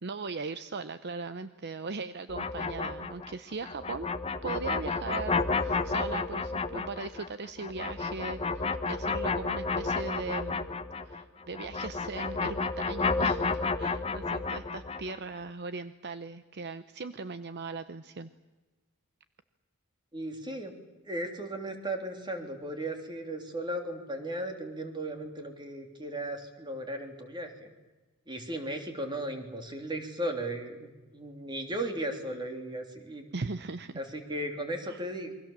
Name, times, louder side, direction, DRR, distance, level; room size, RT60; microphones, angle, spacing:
voice 1, 0.0-4.1 4.4-10.7 11.0-18.3 33.3-33.9 34.9-35.0, right 4 dB, 50° right, 11 dB, 0.8 m, -39 dB
sound 1, 2.3-11.2 11.5-15.2, left 4 dB, 25° left, 1.0 m, -31 dB
voice 2, 20.1-20.7 21.0-27.7 28.3-33.2 33.9-35.3, right 1 dB, 20° right, 4 dB, 3.3 m, -36 dB
28.5 x 23.5 x 7.4 m, 1.2 s
head